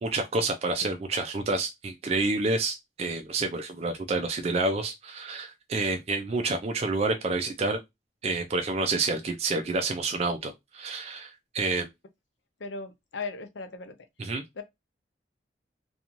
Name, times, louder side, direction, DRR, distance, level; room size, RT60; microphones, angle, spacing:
voice 1, 0.0-7.8 8.2-11.9 14.2-14.4, right 3 dB, 35° right, 0.3 m, -28 dB
voice 2, 12.6-13.9 14.6-14.7, left 4 dB, 80° left, 0.6 m, -37 dB
2.5 x 2.3 x 2.9 m
head